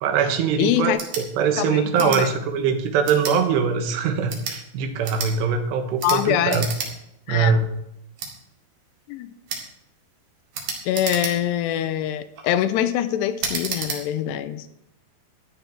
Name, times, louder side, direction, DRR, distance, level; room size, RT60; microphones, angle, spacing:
voice 1, 0.0-6.7 7.3-7.7, right 6 dB, 85° right, 6 dB, 3.5 m, -22 dB
voice 2, 0.6-1.0 1.6-2.3 6.0-6.7 7.3-7.6 9.1-9.3 10.9-14.7, left 11 dB, 85° left, 12 dB, 2.9 m, -24 dB
sound 1, 0.9-1.3 2.0-2.2 3.0-3.4 4.2-4.6 5.0-5.3 6.0-6.2 6.5-6.9 7.3-7.4 8.2-8.3 9.5-9.7 10.5-11.6 12.2-12.5 13.4-14.0, right 5 dB, 55° right, 3.4 m, -30 dB
13.5 x 11.0 x 4.6 m, 0.84 s
omnidirectional pair, 4.8 m